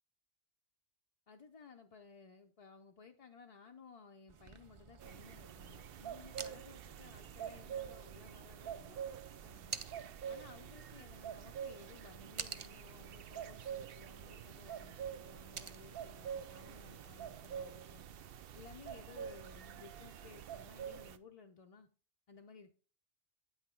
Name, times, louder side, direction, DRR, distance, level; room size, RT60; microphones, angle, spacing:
voice 1, 1.3-9.0 9.3-9.8 10.3-18.0 18.5-21.9 22.3-22.7, left 5 dB, 40° left, 0.6 m, -58 dB
sound 1, 4.3-19.1, right 6 dB, 45° right, 0.4 m, -53 dB
sound 2, 5.0-21.2, right 8 dB, 65° right, 0.8 m, -47 dB
8.7 x 5.7 x 4.4 m
omnidirectional pair, 1.1 m